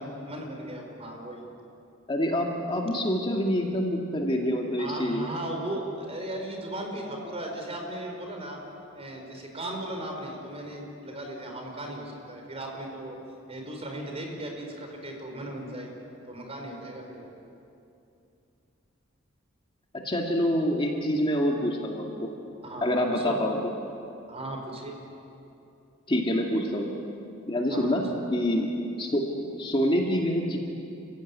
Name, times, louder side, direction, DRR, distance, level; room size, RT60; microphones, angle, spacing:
voice 1, 0.0-1.4 4.8-8.6 8.9-13.2 13.5-15.9 16.3-17.3 22.6-23.4 24.3-24.9 27.7-27.9, right 1 dB, 30° right, 2 dB, 4.6 m, -37 dB
voice 2, 2.1-5.3 20.0-22.3 22.8-23.6 26.1-26.9 27.5-28.7 29.0-29.3 29.5-30.6, equal, 25° left, 1 dB, 2.1 m, -26 dB
29.5 x 15.5 x 9.6 m, 2.7 s
head